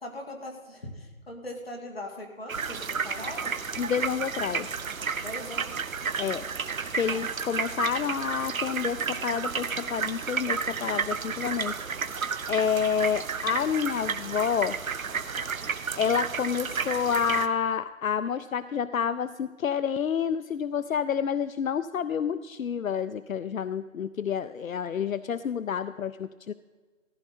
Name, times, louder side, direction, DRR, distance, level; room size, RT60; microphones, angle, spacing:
voice 1, 0.0-3.6 5.2-5.8 7.1-7.3, left 1 dB, 45° left, 1 dB, 2.2 m, -40 dB
sound 1, 2.5-17.5, right 5 dB, 85° right, 0.9 m, -32 dB
voice 2, 3.8-4.8 6.2-6.4 6.9-11.8 12.0-14.8 16.0-26.5, left 7 dB, 80° left, 14 dB, 0.6 m, -29 dB
15.0 x 12.0 x 4.2 m, 1.4 s
figure-of-eight pair, 180°, 40 cm